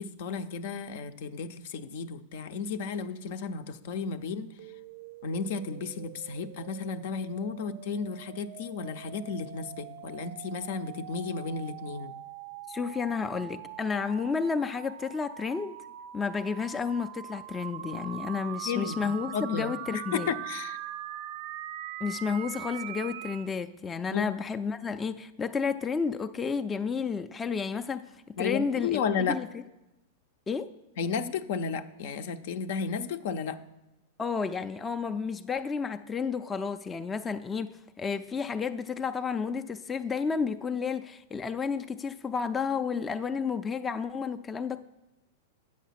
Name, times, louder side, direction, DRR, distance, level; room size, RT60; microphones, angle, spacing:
voice 1, 0.0-4.5 5.2-12.1 18.6-20.8 24.1-24.3 28.4-29.4 31.0-33.6, left 5 dB, 65° left, 10 dB, 0.6 m, -33 dB
sound 1, 4.6-23.5, right 12 dB, 55° right, 0.4 m, -42 dB
voice 2, 12.7-15.8 16.1-20.3 22.0-28.1 28.4-29.5 30.5-30.7 34.2-44.8, left 5 dB, 15° left, 8 dB, 0.4 m, -31 dB
8.3 x 6.5 x 5.8 m, 0.95 s
hypercardioid pair, 115°, 0 cm